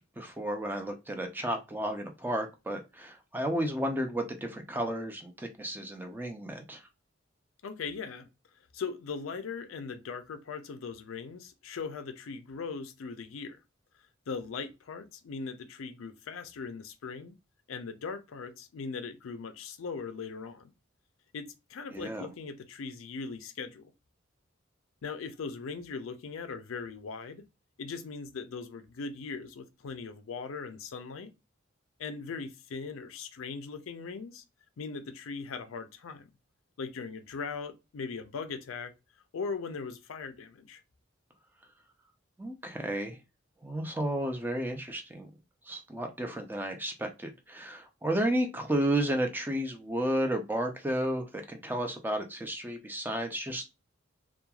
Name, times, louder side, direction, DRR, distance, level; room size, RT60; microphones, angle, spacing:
voice 1, 0.0-6.8 21.9-22.3 42.4-43.2 43.6-45.3 45.7-53.7, right 1 dB, 10° right, 0.4 m, -32 dB
voice 2, 7.6-8.3 8.7-13.6 14.3-17.4 17.7-20.7 21.3-23.9 25.0-27.4 27.8-31.3 32.0-34.4 34.8-36.3 36.8-38.9 39.3-40.8, left 5 dB, 85° left, 0.4 m, -39 dB
3.0 x 2.3 x 2.2 m
head